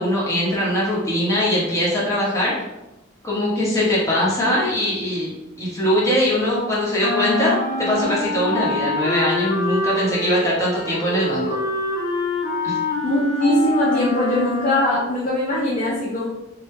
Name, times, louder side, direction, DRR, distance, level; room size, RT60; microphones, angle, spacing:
voice 1, 0.0-2.5 3.2-5.3 5.6-11.6 12.6-12.8, left 1 dB, 15° left, -7 dB, 1.0 m, -21 dB
Wind instrument woodwind instrument, 7.0-15.1, left 2 dB, 75° left, 0.8 m, -25 dB
voice 2, 13.0-16.3, left 1 dB, 40° left, -6 dB, 0.5 m, -21 dB
3.2 x 2.2 x 3.2 m, 0.99 s
head